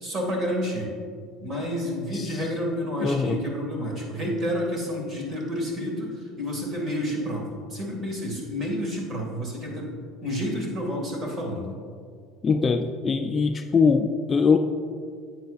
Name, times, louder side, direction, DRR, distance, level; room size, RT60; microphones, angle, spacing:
voice 1, 0.0-0.9 1.4-11.8, equal, 35° right, 0 dB, 2.0 m, -30 dB
voice 2, 2.1-2.5 3.0-3.4 12.4-14.6, left 5 dB, 25° left, 7 dB, 0.3 m, -22 dB
10.5 x 7.9 x 2.5 m, 2.2 s
cardioid pair, 135°, 0 cm